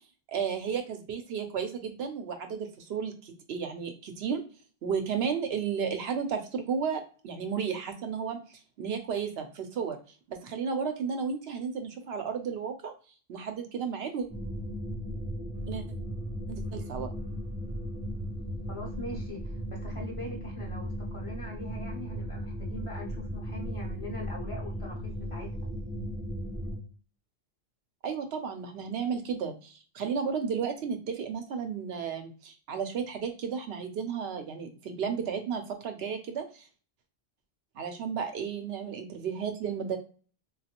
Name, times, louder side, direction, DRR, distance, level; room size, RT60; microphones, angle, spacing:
voice 1, 0.3-4.4 4.8-8.4 8.8-10.0 10.3-12.9 13.3-14.3 15.7-15.8 16.5-17.1 28.0-36.7 37.7-40.0, right 6 dB, 80° right, 6 dB, 0.8 m, -33 dB
sound 1, 14.3-26.8, equal, 10° right, 0.3 m, -36 dB
voice 2, 18.7-25.5, left 1 dB, 35° left, -1 dB, 0.7 m, -42 dB
3.2 x 2.3 x 2.8 m, 0.38 s
omnidirectional pair, 1.1 m